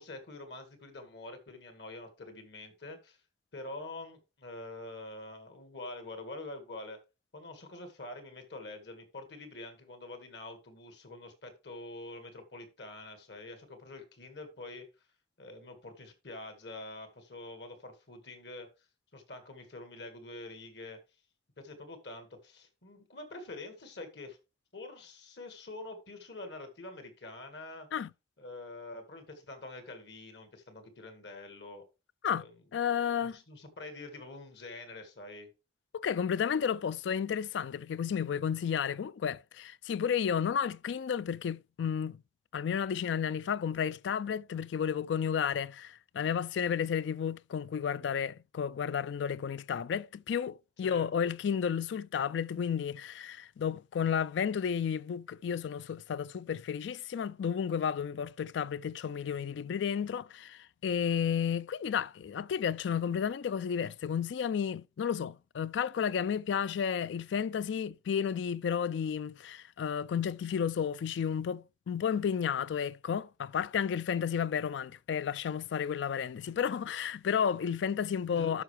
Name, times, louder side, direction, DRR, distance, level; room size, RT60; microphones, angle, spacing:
voice 1, 0.0-3.2 3.5-7.0 7.3-14.9 15.4-18.7 19.1-21.0 21.6-24.4 24.7-27.9 28.4-31.8 32.3-32.6 33.2-35.5 50.8-51.1 78.3-78.6, left 2 dB, 70° left, 1.9 m, -46 dB
voice 2, 32.7-33.4 35.9-42.2 42.5-78.6, left 7 dB, 90° left, 0.3 m, -32 dB
12.0 x 5.6 x 3.3 m
head